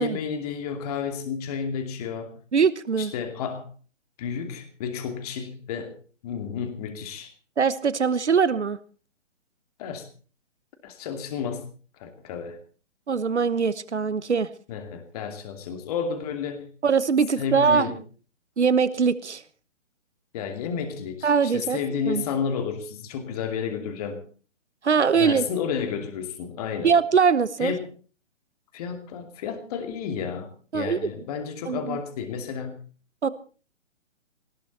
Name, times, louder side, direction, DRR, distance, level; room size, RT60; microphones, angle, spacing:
voice 1, 0.0-2.3 3.0-3.7 4.2-6.0 6.2-7.3 9.8-10.1 10.8-11.7 12.0-12.6 14.7-16.7 17.4-18.0 20.3-24.2 25.1-26.9 27.6-27.9 28.7-32.8, left 6 dB, 30° left, 7 dB, 2.6 m, -31 dB
voice 2, 2.5-3.1 7.6-8.8 13.1-14.5 16.8-17.9 18.6-19.4 21.2-21.8 22.1-22.2 24.8-25.4 26.8-27.7 30.7-31.0 31.7-32.0 33.2-33.3, right 6 dB, 65° right, 17 dB, 1.2 m, -22 dB
19.5 x 17.0 x 4.2 m, 0.40 s
figure-of-eight pair, 135°, 37 cm